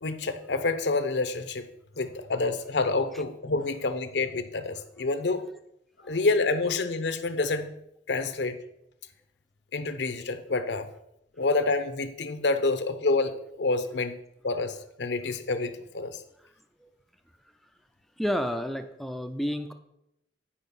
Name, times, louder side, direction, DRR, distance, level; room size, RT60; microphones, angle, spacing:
voice 1, 0.0-1.6 2.0-5.4 6.0-7.7 8.1-8.6 9.7-10.9 11.4-14.2 14.4-16.2, left 3 dB, 70° left, 8 dB, 0.8 m, -28 dB
voice 2, 18.2-19.7, equal, ahead, 7 dB, 0.4 m, -31 dB
10.0 x 5.0 x 5.4 m, 0.79 s
head